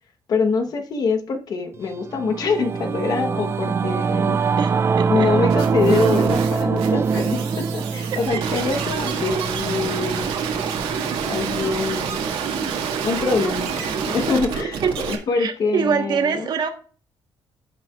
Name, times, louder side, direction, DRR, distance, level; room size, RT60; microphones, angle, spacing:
voice 1, 0.3-4.4 5.1-10.3 11.2-12.2 13.0-14.8 15.1-16.5, left 4 dB, 45° left, 1.1 m, -24 dB
Singing / Musical instrument, 1.9-11.6, right 5 dB, 25° right, 0.4 m, -23 dB
voice 2, 4.6-5.3 14.8-16.7, right 6 dB, 50° right, 1.3 m, -24 dB
sound 1, 5.5-15.1, right 6 dB, 85° right, 1.9 m, -27 dB
15.5 x 5.8 x 2.4 m
cardioid pair, 160°, 9 cm